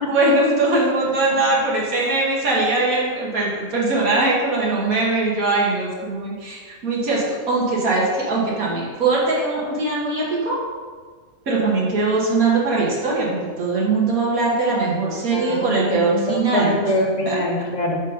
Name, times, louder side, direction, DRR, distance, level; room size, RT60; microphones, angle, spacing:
voice 1, 0.1-10.6 11.5-16.7 17.3-17.4, right 3 dB, 85° right, -4 dB, 1.8 m, -21 dB
voice 2, 15.2-18.0, left 1 dB, 35° left, 0 dB, 0.9 m, -24 dB
5.3 x 5.0 x 5.3 m, 1.5 s
omnidirectional pair, 1.5 m